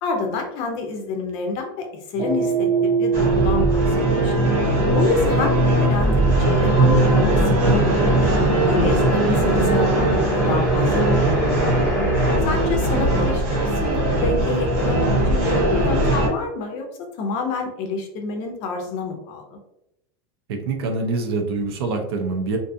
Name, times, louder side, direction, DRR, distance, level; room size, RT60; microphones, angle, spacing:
voice 1, 0.0-4.3 4.9-8.3 8.6-11.7 12.4-16.9 17.2-19.6, left 3 dB, 40° left, 3 dB, 0.5 m, -28 dB
sound 1, 2.2-10.6, right 6 dB, 20° right, 0.6 m, -27 dB
sound 2, 3.1-16.3, right 1 dB, 50° right, 1.0 m, -19 dB
sound 3, 5.7-12.4, right 1 dB, 5° left, 0.9 m, -30 dB
voice 2, 20.5-22.6, right 3 dB, 70° right, 3 dB, 0.6 m, -25 dB
2.5 x 2.3 x 2.6 m, 0.82 s
supercardioid pair, 170°, 13 cm